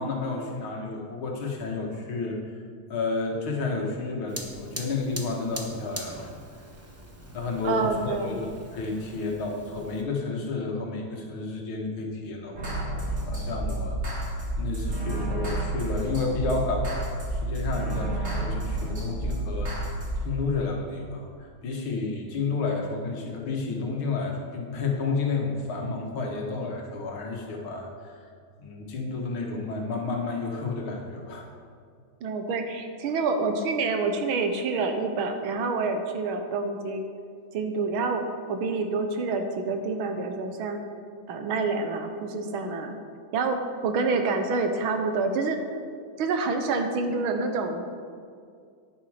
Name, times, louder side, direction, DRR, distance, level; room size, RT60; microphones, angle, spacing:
voice 1, 0.0-2.4 2.9-6.2 7.3-8.5 8.7-14.0 14.2-14.3 14.6-20.0 20.2-21.3 21.6-27.9 28.6-31.5, left 3 dB, 80° left, 0 dB, 2.3 m, -31 dB
Fire, 4.3-10.0, right 1 dB, 15° right, 0.5 m, -42 dB
voice 2, 7.6-8.5 32.2-37.1 37.5-40.8 41.3-42.9 43.3-45.6 46.2-47.9, right 4 dB, 85° right, 6 dB, 1.8 m, -27 dB
sound 1, 12.5-20.2, right 1 dB, 35° right, 3.2 m, -30 dB
11.0 x 9.1 x 4.9 m, 2.2 s
omnidirectional pair, 2.2 m